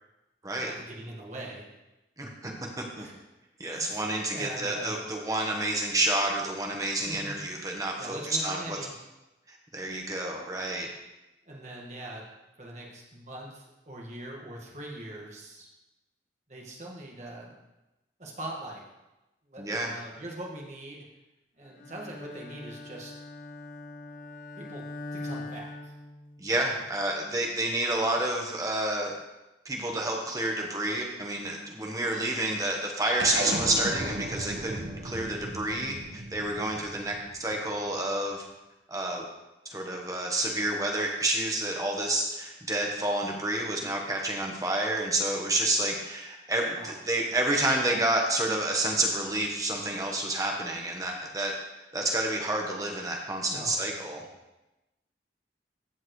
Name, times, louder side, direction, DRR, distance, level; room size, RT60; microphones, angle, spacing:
voice 1, 0.6-1.7 3.0-3.2 3.7-5.0 7.0-7.4 8.0-8.9 11.5-12.3 12.6-15.7 16.5-17.6 18.2-18.8 19.5-21.0 21.6-23.1 24.6-24.8 25.1-25.9 46.7-47.0 53.5-53.8, right 1 dB, 40° right, -2 dB, 1.7 m, -41 dB
voice 2, 2.2-2.5 3.0-3.1 3.6-8.8 9.5-10.9 19.6-19.9 26.4-29.1 29.6-38.4 38.9-39.3 39.6-51.5 51.9-54.2, right 1 dB, 20° right, 0 dB, 1.2 m, -29 dB
Bowed string instrument, 21.8-26.7, left 2 dB, 50° left, 0.6 m, -42 dB
sound 1, 33.2-37.9, right 1 dB, 70° right, 1.4 m, -36 dB
14.5 x 5.8 x 3.2 m, 1.0 s
head